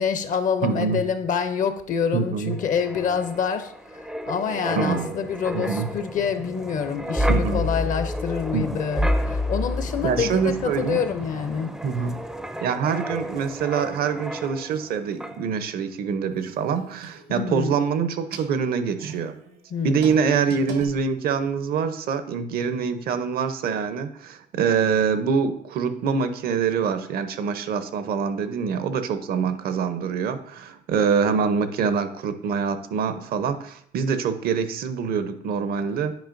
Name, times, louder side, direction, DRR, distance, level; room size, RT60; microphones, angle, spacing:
voice 1, 0.0-3.7 4.3-11.7 17.3-17.8 19.7-20.1 36.0-36.2, left 7 dB, 50° left, 9 dB, 0.6 m, -26 dB
voice 2, 0.6-1.0 2.1-2.6 4.8-5.1 5.5-5.9 7.3-7.7 8.5-8.8 10.0-11.0 11.8-12.2 12.6-19.3 19.8-36.1, right 6 dB, 65° right, 10 dB, 0.7 m, -25 dB
Wind, 2.5-14.9 15.2-15.4, equal, 5° right, 0.4 m, -30 dB
sound 1, 16.3-17.7 18.1-21.6, right 5 dB, 85° right, 1.3 m, -43 dB
9.2 x 5.0 x 2.6 m, 0.68 s
cardioid pair, 110°, 17 cm